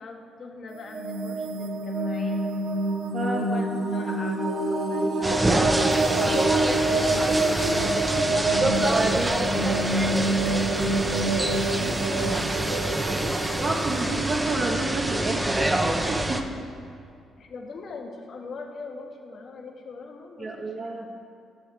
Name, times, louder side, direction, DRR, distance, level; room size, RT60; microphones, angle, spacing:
voice 1, 0.0-2.5 2.8-2.9 3.2-5.8 6.8-7.8 9.8-14.1 17.4-20.9, left 4 dB, 55° left, 2 dB, 1.3 m, -42 dB
sound 1, 0.7-15.4, right 2 dB, 80° right, 1.2 m, -27 dB
voice 2, 3.1-3.5 8.8-9.4 13.6-16.4 20.4-21.1, right 3 dB, 45° right, -2 dB, 1.2 m, -29 dB
sound 2, 5.2-16.4, right 1 dB, 15° right, 0.7 m, -26 dB
9.2 x 6.3 x 6.2 m, 2.4 s
cardioid pair, 90°, 0 cm